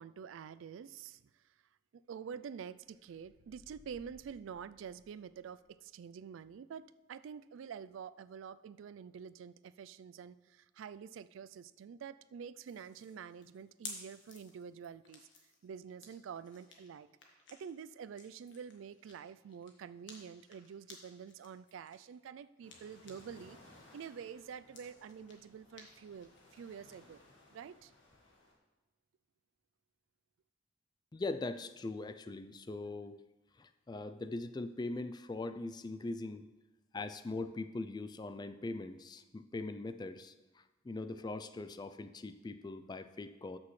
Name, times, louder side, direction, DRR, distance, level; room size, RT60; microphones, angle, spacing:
voice 1, 0.0-1.4 1.9-15.3 15.6-17.1 17.5-23.6 23.9-27.2 27.5-27.9, right 7 dB, 80° right, 15 dB, 0.3 m, -48 dB
sound 1, 2.8-5.4, left 1 dB, 35° right, 3.3 m, -64 dB
sound 2, 12.7-23.5 23.8-27.0, left 4 dB, 65° left, 1.5 m, -55 dB
sound 3, 22.6-28.5, left 1 dB, 90° left, 1.8 m, -61 dB
voice 2, 31.1-33.2 33.6-36.5 36.9-43.6, left 2 dB, 20° left, 11 dB, 0.3 m, -41 dB
13.0 x 6.1 x 3.2 m, 1.1 s
head